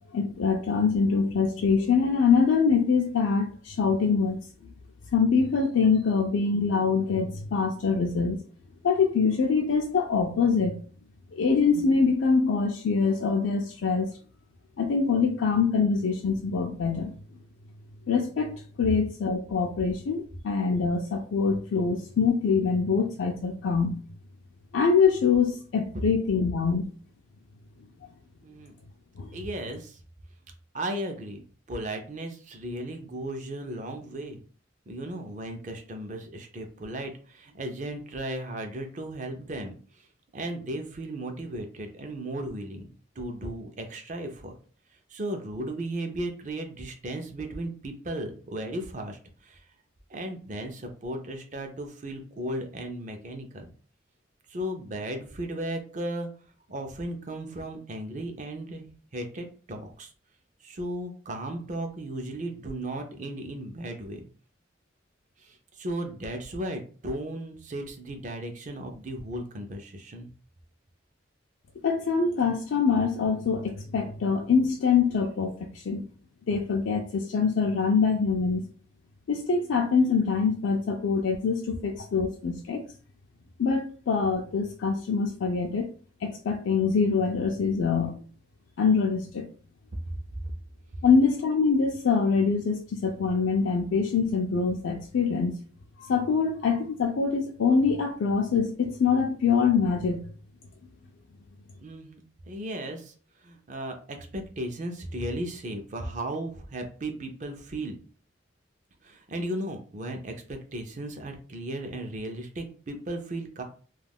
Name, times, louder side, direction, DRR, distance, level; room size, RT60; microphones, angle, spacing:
voice 1, 0.1-4.4 5.1-8.4 8.8-10.8 11.3-14.1 14.8-17.1 18.1-24.0 24.7-26.9 29.2-29.3 71.8-76.0 76.5-78.6 79.3-82.8 83.6-85.9 86.2-88.2 88.8-89.4 91.0-95.6 96.0-100.2, left 5 dB, 85° left, 1 dB, 0.4 m, -24 dB
voice 2, 28.4-28.7 29.3-30.0 30.7-31.4 31.7-34.4 34.9-40.1 40.3-42.9 43.2-44.5 45.1-49.6 50.1-53.7 54.5-56.3 56.7-58.9 59.1-60.1 60.6-64.3 65.4-70.3 101.8-102.2 102.5-103.1 103.4-108.0 109.0-113.6, right 1 dB, 40° right, 4 dB, 0.5 m, -35 dB
2.3 x 2.2 x 3.4 m, 0.42 s
head